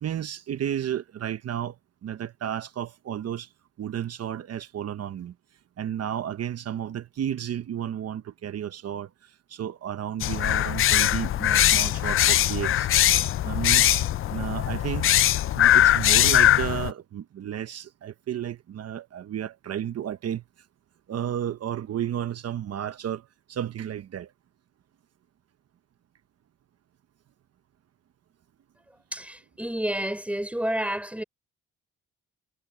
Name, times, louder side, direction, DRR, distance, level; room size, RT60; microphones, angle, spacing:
voice 1, 0.0-1.8 2.0-3.5 3.8-5.3 5.8-12.9 13.4-15.1 15.5-20.4 21.1-24.3, right 10 dB, 55° right, 1.0 m, -32 dB
sound 1, 10.2-16.9, left 12 dB, 45° left, 0.4 m, -21 dB
voice 2, 29.1-31.2, right 1 dB, 5° right, 3.7 m, -30 dB
cardioid pair, 90°, 30 cm